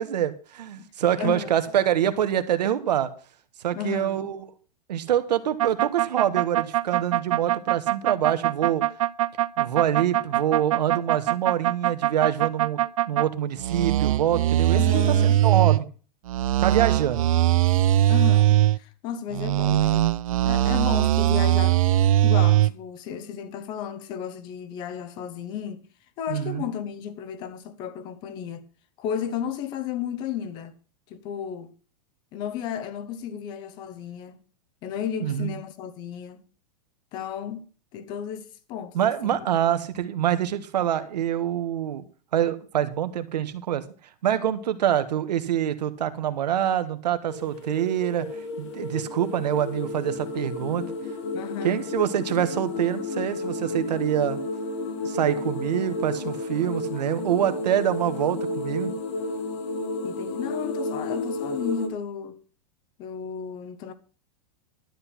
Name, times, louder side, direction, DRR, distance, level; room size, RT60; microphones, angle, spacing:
voice 1, 0.0-3.1 3.6-4.5 4.9-8.8 9.6-12.8 13.1-15.1 15.4-15.9 16.6-17.3 26.3-26.7 35.2-35.5 38.9-42.0 42.3-43.8 44.2-48.3 48.6-50.8 51.6-54.4 55.0-58.9, right 10 dB, 90° right, 1.6 m, -25 dB
voice 2, 1.2-1.5 3.7-4.3 14.7-15.4 18.1-20.1 20.4-21.8 22.2-25.8 26.2-28.7 29.0-30.7 31.1-31.7 32.3-34.4 34.8-36.4 37.1-37.7 37.9-39.5 51.3-51.8 60.0-62.4 63.0-63.9, left 8 dB, 20° left, 1.0 m, -33 dB
sound 1, 5.6-13.3 13.6-15.8 16.3-18.8 19.3-22.7, right 13 dB, 55° right, 0.5 m, -21 dB
sound 2, 47.3-61.9, left 2 dB, 45° left, 1.5 m, -32 dB
12.5 x 8.3 x 6.0 m
supercardioid pair, 180°, 20 cm